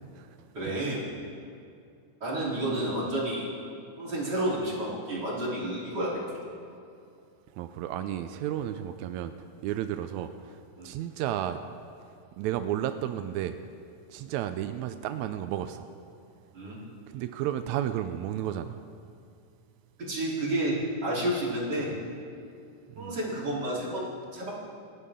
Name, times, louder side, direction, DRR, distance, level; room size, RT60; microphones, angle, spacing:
voice 1, 0.5-1.1 2.2-3.5 4.0-6.1 10.8-10.9 16.5-16.8 20.0-21.9 23.0-24.5, right 1 dB, 30° right, -7 dB, 4.0 m, -30 dB
voice 2, 7.5-9.3 9.6-11.6 12.4-13.5 14.1-15.9 17.1-18.8 23.0-23.2, right 11 dB, 85° right, 9 dB, 1.6 m, -32 dB
27.5 x 11.0 x 3.7 m, 2.4 s
omnidirectional pair, 3.8 m